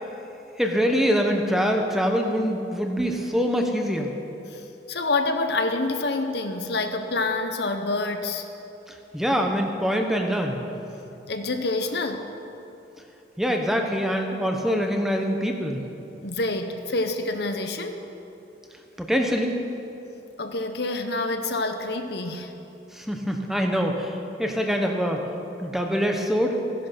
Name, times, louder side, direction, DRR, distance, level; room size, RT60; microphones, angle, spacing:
voice 1, 0.6-4.1 9.1-10.5 13.4-15.8 19.0-19.6 22.9-25.3 25.6-26.5, equal, ahead, 2 dB, 0.9 m, -24 dB
voice 2, 4.9-8.5 11.3-12.3 16.2-18.0 20.4-22.5, left 2 dB, 60° left, 6 dB, 1.0 m, -27 dB
15.5 x 10.5 x 5.8 m, 2.9 s
head